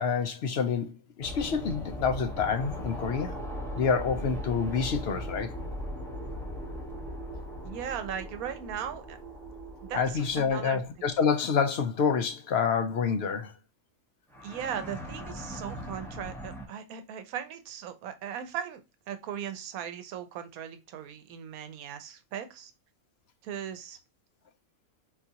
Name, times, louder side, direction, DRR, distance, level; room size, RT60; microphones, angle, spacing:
voice 1, 0.0-3.4 3.7-5.5 9.9-13.5, left 6 dB, 65° left, 0.6 m, -28 dB
sound 1, 1.2-11.1 14.3-16.6, equal, ahead, 0.5 m, -39 dB
voice 2, 7.6-9.2 9.9-10.8 14.4-22.7 23.4-24.0, right 8 dB, 85° right, 1.1 m, -38 dB
3.9 x 2.4 x 2.7 m
omnidirectional pair, 1.5 m